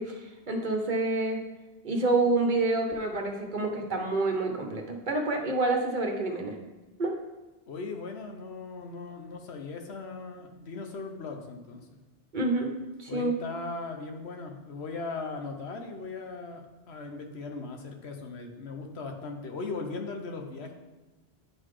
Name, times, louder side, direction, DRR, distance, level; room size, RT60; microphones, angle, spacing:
voice 1, 0.0-1.4 1.8-6.6 7.0-7.1 12.3-12.7 13.0-13.4, right 2 dB, 50° right, 3 dB, 1.0 m, -28 dB
voice 2, 7.7-12.0 13.1-20.7, left 3 dB, 75° left, 4 dB, 1.2 m, -38 dB
9.9 x 4.0 x 4.8 m, 1.1 s
omnidirectional pair, 1.1 m